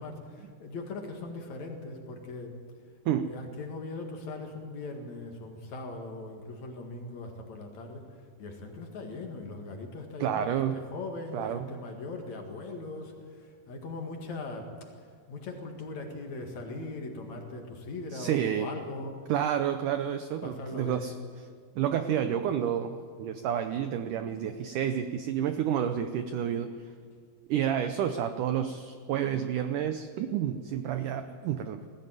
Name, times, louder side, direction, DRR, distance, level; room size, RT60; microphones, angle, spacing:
voice 1, 0.0-2.5 3.2-14.7 15.3-19.2 20.4-21.1, left 2 dB, 50° left, 3 dB, 2.8 m, -40 dB
voice 2, 10.2-10.8 11.3-11.7 18.1-18.7 19.3-21.1 21.8-26.7 27.5-31.8, right 9 dB, 80° right, 9 dB, 1.9 m, -30 dB
19.0 x 15.0 x 9.1 m, 2.1 s
omnidirectional pair, 4.6 m